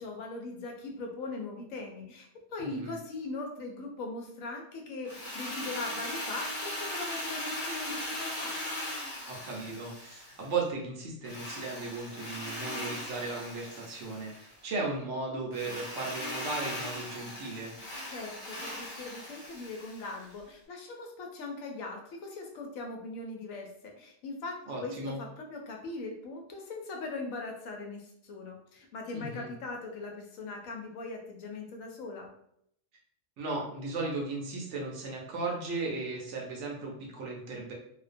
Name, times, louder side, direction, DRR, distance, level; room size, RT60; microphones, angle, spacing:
voice 1, 0.0-8.5 18.1-23.7 24.0-24.6 24.8-32.3, left 3 dB, 75° left, 1 dB, 1.0 m, -40 dB
voice 2, 2.6-2.9 9.3-17.7 24.7-25.2 29.1-29.5 33.4-37.7, right 3 dB, 65° right, -1 dB, 0.9 m, -36 dB
Drill, 5.0-10.6 11.2-14.5 15.5-20.3, left 1 dB, 45° left, 0.7 m, -39 dB
2.4 x 2.1 x 2.5 m, 0.72 s
omnidirectional pair, 1.4 m